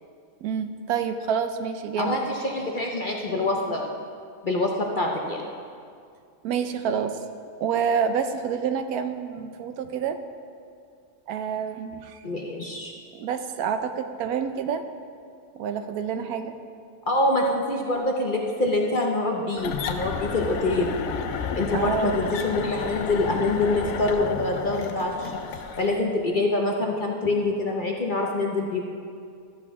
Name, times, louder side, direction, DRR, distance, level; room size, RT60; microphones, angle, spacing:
voice 1, 0.4-2.2 6.4-7.2 7.6-10.2 11.3-12.2 13.1-14.8 15.6-16.5 21.7-22.2, right 7 dB, 80° right, 8 dB, 1.1 m, -28 dB
voice 2, 2.0-3.9 4.4-5.5 12.2-12.9 17.1-21.0 21.5-25.4 25.8-28.8, left 2 dB, 45° left, 0 dB, 0.7 m, -25 dB
sound 1, 19.6-26.0, left 6 dB, 70° left, 1.0 m, -32 dB
12.5 x 8.0 x 3.6 m, 2.3 s
omnidirectional pair, 1.6 m